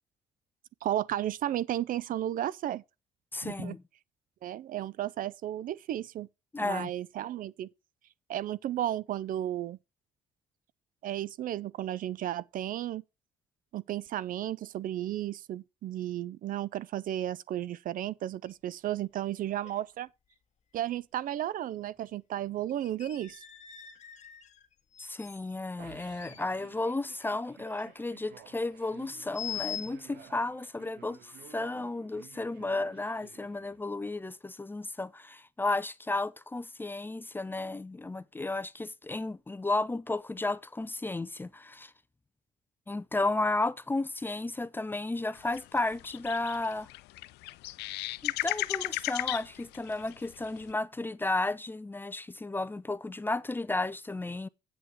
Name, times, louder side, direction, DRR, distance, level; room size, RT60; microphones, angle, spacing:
voice 1, 0.8-2.8 3.4-3.8 4.4-6.3 6.6-7.7 8.3-9.8 11.0-13.0 13.7-20.1 20.7-23.4, right 12 dB, 55° right, 0.5 m, -33 dB
voice 2, 3.3-3.8 6.5-6.9 25.0-41.9 42.9-46.9 48.2-54.5, left 2 dB, 10° left, 0.5 m, -33 dB
sound 1, 18.5-18.6 18.9-19.0 19.6-19.9 20.3-20.4 22.0-22.1 22.7-25.4 26.0-27.3 27.6-28.0 29.3-30.0, left 10 dB, 45° left, 1.6 m, -43 dB
sound 2, 25.8-34.1, right 9 dB, 70° right, 1.5 m, -55 dB
sound 3, 45.3-50.7, left 19 dB, 80° left, 0.5 m, -35 dB
7.9 x 7.8 x 4.8 m
cardioid pair, 110°, 17 cm